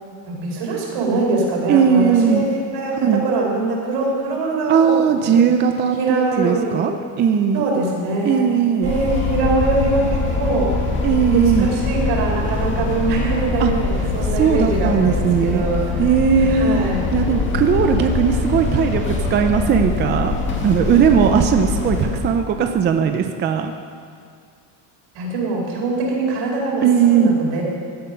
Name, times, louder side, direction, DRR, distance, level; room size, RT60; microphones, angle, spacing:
voice 1, 0.2-4.9 5.2-5.4 6.0-6.9 7.5-8.5 8.8-11.0 11.3-16.1 16.3-17.0 25.1-27.6, right 3 dB, 60° right, -2 dB, 4.7 m, -23 dB
voice 2, 1.7-2.5 3.0-3.3 4.7-6.9 7.2-7.7 8.2-8.9 11.0-11.7 13.6-13.7 14.3-15.6 16.0-16.8 17.1-20.3 20.6-23.7 26.8-27.3, right 7 dB, 25° right, 6 dB, 0.4 m, -18 dB
sound 1, 8.8-22.3, left 3 dB, 25° left, 1.9 m, -23 dB
16.5 x 11.5 x 5.6 m, 2.3 s
cardioid pair, 170°, 49 cm